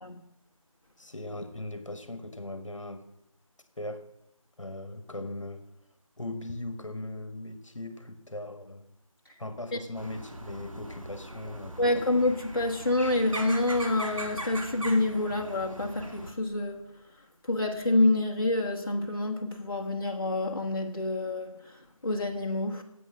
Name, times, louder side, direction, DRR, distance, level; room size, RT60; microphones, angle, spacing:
voice 1, 1.0-3.1 3.8-4.0 4.6-5.6 6.2-8.9 9.4-12.0, left 1 dB, 60° left, 1.8 m, -39 dB
sound 1, 10.0-16.3, right 1 dB, 70° right, 2.1 m, -40 dB
voice 2, 11.8-16.9 17.5-21.8 22.0-22.8, left 2 dB, 40° left, 1.6 m, -27 dB
17.0 x 8.2 x 6.5 m
figure-of-eight pair, 165°, 18 cm